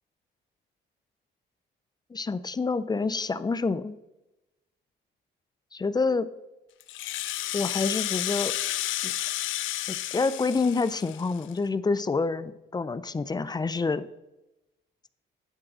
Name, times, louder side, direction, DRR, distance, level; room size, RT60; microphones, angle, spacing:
voice 1, 2.1-4.0 5.7-6.3 7.5-8.5 9.0-9.3 9.9-14.1, left 4 dB, 20° left, 15 dB, 0.5 m, -28 dB
Rattle (instrument), 6.8-11.6, left 14 dB, 80° left, 0.5 m, -31 dB
11.0 x 3.7 x 6.1 m, 0.96 s
cardioid pair, 90°, 20 cm